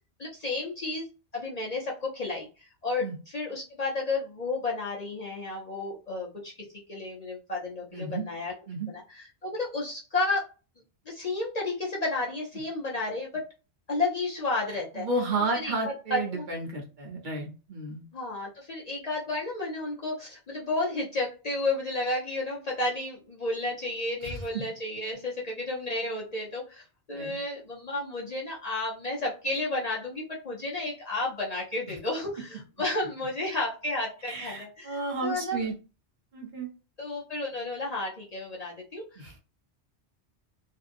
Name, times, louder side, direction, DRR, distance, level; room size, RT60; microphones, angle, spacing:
voice 1, 0.2-1.0 1.3-2.5 2.8-3.0 3.3-6.5 6.9-8.5 8.9-10.4 11.1-13.4 13.9-15.1 15.6-16.4 18.1-35.6 37.0-39.4, left 2 dB, 45° left, -3 dB, 0.6 m, -32 dB
voice 2, 7.9-8.2 8.7-8.9 14.7-18.0 24.2-24.6 27.1-27.3 31.9-32.0 34.3-35.7 36.3-36.7 39.2-39.4, right 2 dB, 50° right, 0 dB, 0.8 m, -32 dB
2.6 x 2.2 x 2.5 m, 0.33 s
omnidirectional pair, 1.1 m